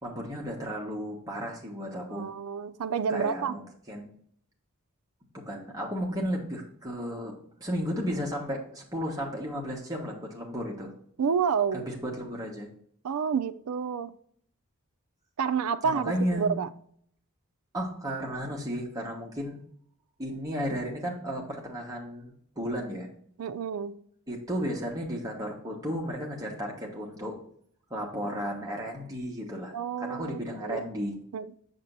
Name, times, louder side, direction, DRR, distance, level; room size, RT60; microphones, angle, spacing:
voice 1, 0.0-2.3 3.1-3.6 3.9-4.1 5.4-7.3 7.6-10.9 11.7-12.7 15.8-16.5 17.7-19.6 20.2-23.1 24.3-27.4 27.9-31.1, equal, 15° right, 1.3 m, -34 dB
voice 2, 2.1-3.6 11.2-11.9 13.0-14.1 15.4-16.7 23.4-24.0 29.7-30.8 31.3-31.5, right 6 dB, 85° right, 0.4 m, -29 dB
6.7 x 6.6 x 2.6 m
head